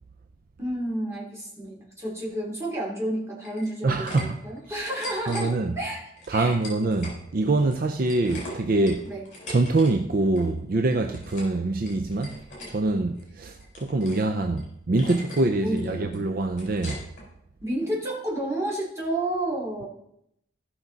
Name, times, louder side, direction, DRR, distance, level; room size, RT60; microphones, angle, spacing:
voice 1, 0.6-6.6 9.1-9.2 15.6-16.1 17.6-19.8, right 1 dB, 15° right, 3.1 m, -30 dB
sound 1, 3.4-4.2 4.6-5.5 6.2-7.2 7.5-9.9 10.2-10.5 10.9-11.6 11.8-12.7 13.2-14.3 14.6-14.7 15.0-15.5 15.8-17.2, left 1 dB, 40° left, 4.3 m, -41 dB
voice 2, 3.8-4.4 4.7-4.8 5.3-5.7 6.3-9.1 9.5-17.1, right 2 dB, 50° right, 0.5 m, -25 dB
15.5 x 6.0 x 4.0 m
head